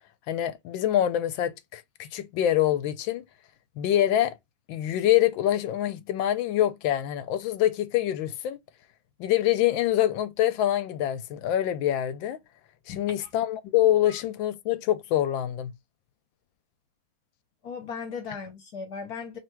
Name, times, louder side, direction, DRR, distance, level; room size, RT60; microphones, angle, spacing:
voice 1, 0.3-3.2 3.8-4.4 4.7-8.6 9.2-12.4 12.9-15.7, left 12 dB, 75° left, 1.2 m, -25 dB
voice 2, 12.9-13.3 14.0-14.1 17.6-19.4, left 5 dB, 55° left, 1.2 m, -37 dB
3.4 x 2.5 x 4.4 m
omnidirectional pair, 2.3 m